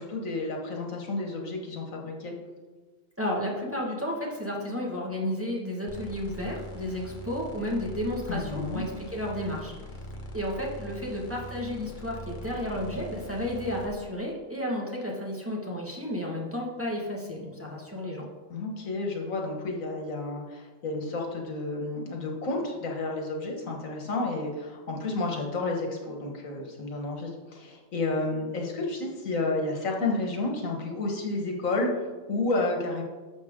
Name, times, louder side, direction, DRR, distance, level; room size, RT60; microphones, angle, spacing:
voice 1, 0.0-2.3 8.3-8.8 18.5-33.0, left 2 dB, 85° left, 1 dB, 1.9 m, -31 dB
voice 2, 3.2-9.7 10.3-18.2, left 1 dB, 10° right, -3 dB, 1.7 m, -32 dB
sound 1, 5.9-13.9, equal, 40° left, 1.2 m, -42 dB
11.5 x 7.2 x 3.7 m, 1.3 s
omnidirectional pair, 1.4 m